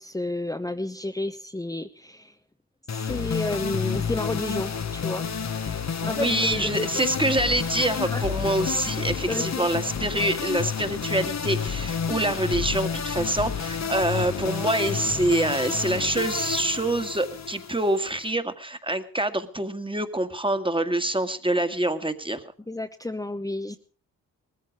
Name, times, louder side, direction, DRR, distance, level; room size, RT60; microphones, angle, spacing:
voice 1, 0.0-2.3 2.9-5.3 6.0-6.9 8.1-8.2 9.3-9.7 13.8-13.9 22.7-23.8, left 2 dB, 10° left, 5 dB, 1.0 m, -31 dB
sound 1, 2.9-18.3, left 6 dB, 50° left, 1.2 m, -30 dB
voice 2, 5.7-22.4, right 1 dB, 15° right, 9 dB, 1.8 m, -26 dB
19.5 x 14.5 x 4.8 m, 0.40 s
cardioid pair, 60°, 34 cm